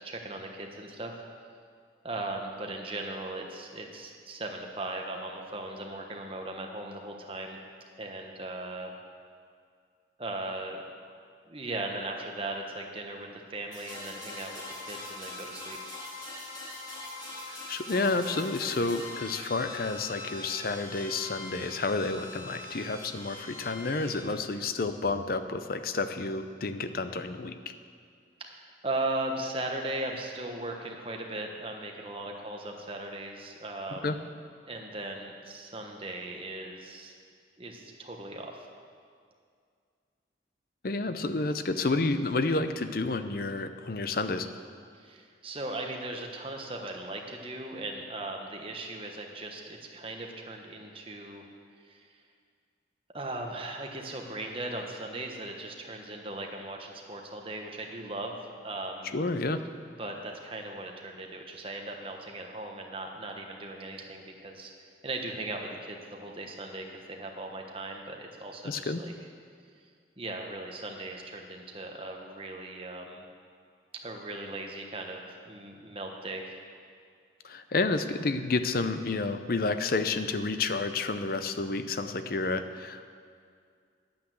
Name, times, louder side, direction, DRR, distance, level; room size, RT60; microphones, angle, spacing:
voice 1, 0.0-1.1 2.0-7.6 8.0-9.0 10.2-10.8 11.5-15.8 28.4-34.2 34.7-37.1 37.6-38.7 44.9-51.5 51.8-52.1 53.1-58.4 58.6-59.1 60.0-64.7 65.0-69.1 70.2-73.2 74.0-76.4, right 2 dB, 30° right, 2 dB, 1.2 m, -38 dB
sound 1, 13.7-24.2, left 2 dB, 25° left, 2.2 m, -42 dB
voice 2, 17.5-27.6 34.0-34.2 40.8-44.5 59.1-59.6 68.6-69.0 77.4-83.0, left 3 dB, 55° left, 10 dB, 0.6 m, -30 dB
10.5 x 8.6 x 7.6 m, 2.2 s
head